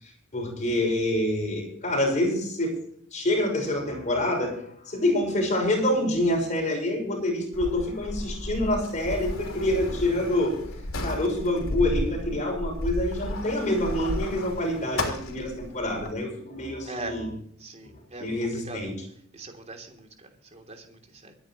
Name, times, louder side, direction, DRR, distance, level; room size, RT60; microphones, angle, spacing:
voice 1, 0.0-2.7 3.1-10.6 11.0-17.3 17.8-17.9 18.2-18.9, left 1 dB, 35° left, 2 dB, 6.2 m, -27 dB
Sliding door, 7.5-16.1, left 1 dB, 90° left, 3.4 m, -33 dB
voice 2, 16.9-17.2 17.6-18.3 18.5-18.9 19.3-21.3, right 2 dB, 35° right, 3 dB, 3.0 m, -41 dB
24.0 x 10.0 x 3.1 m, 0.66 s
head